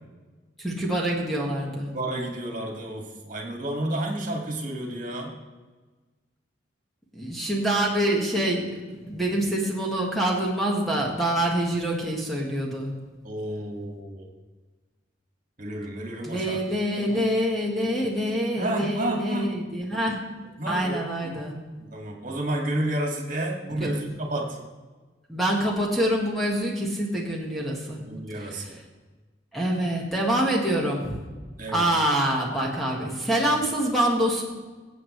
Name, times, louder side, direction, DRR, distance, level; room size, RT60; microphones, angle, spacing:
voice 1, 0.6-1.9 7.1-12.9 16.2-20.2 20.6-21.5 23.7-23.9 25.3-28.0 28.4-28.7 29.5-31.1 31.7-34.4, right 1 dB, ahead, -3 dB, 1.6 m, -26 dB
voice 2, 1.9-5.3 13.2-14.3 15.6-16.6 16.9-17.2 18.6-19.5 20.6-21.4 21.8-24.6 28.1-28.8 31.6-31.9, right 1 dB, 45° right, 0 dB, 2.2 m, -31 dB
22.5 x 8.3 x 3.3 m, 1.3 s
head